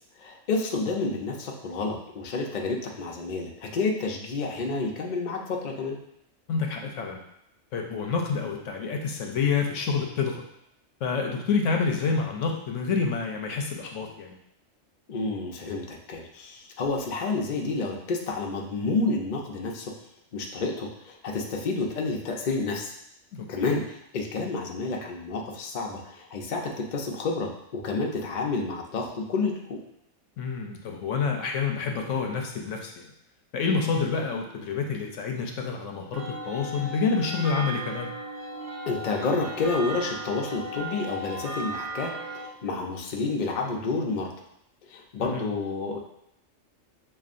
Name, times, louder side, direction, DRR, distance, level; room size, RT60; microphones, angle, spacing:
voice 1, 0.2-6.0 15.1-19.9 20.3-22.9 23.5-29.8 38.9-44.3 44.9-46.0, left 3 dB, 50° left, 0 dB, 0.6 m, -30 dB
voice 2, 6.5-7.2 7.7-10.4 11.0-14.4 23.3-23.8 30.4-33.0 33.5-38.1 45.2-45.4, left 5 dB, 75° left, 2 dB, 0.9 m, -28 dB
sound 1, 36.1-42.5, right 1 dB, 65° right, 1.0 m, -36 dB
6.8 x 2.4 x 2.5 m, 0.78 s
omnidirectional pair, 1.3 m